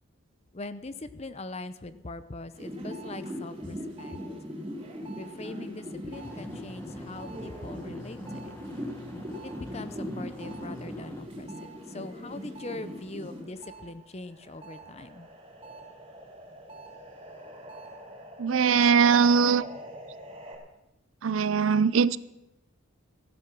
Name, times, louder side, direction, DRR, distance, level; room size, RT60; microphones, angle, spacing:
voice 1, 0.5-4.2 5.2-8.5 9.4-15.3, left 2 dB, 30° left, 12 dB, 0.7 m, -42 dB
sound 1, 2.5-13.8 14.2-20.5, equal, 25° right, 3.4 m, -41 dB
sound 2, 6.1-11.2, left 1 dB, 15° left, 1.5 m, -47 dB
voice 2, 18.4-19.6 21.2-22.2, right 6 dB, 70° right, 18 dB, 0.5 m, -21 dB
16.0 x 11.5 x 6.1 m, 0.94 s
head